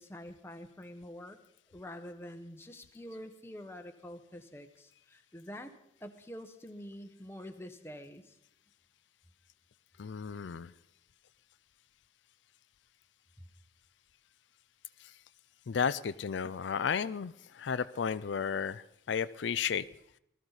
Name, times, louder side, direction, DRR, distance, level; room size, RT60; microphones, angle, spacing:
voice 1, 0.0-1.4 1.7-5.7 6.0-8.4, left 1 dB, 15° left, 6 dB, 1.0 m, -46 dB
voice 2, 10.0-10.7 15.7-19.8, left 7 dB, 80° left, 15 dB, 0.4 m, -33 dB
19.5 x 13.5 x 4.1 m, 0.76 s
head